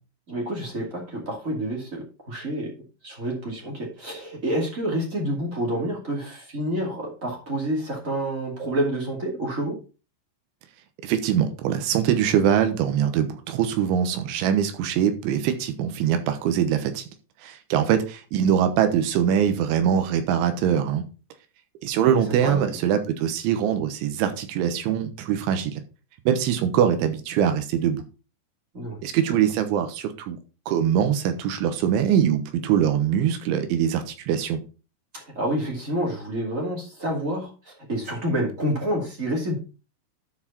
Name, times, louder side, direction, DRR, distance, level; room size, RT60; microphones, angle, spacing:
voice 1, 0.3-2.7 3.0-9.7 22.1-22.7 28.7-29.0 29.3-29.4 35.1-39.5, right 1 dB, 40° right, -1 dB, 1.2 m, -28 dB
voice 2, 11.0-17.0 17.4-21.0 21.8-25.7 26.3-28.0 29.0-30.4 30.7-34.6, right 9 dB, 75° right, 8 dB, 3.3 m, -23 dB
13.0 x 4.7 x 4.2 m, 0.33 s
omnidirectional pair, 5.8 m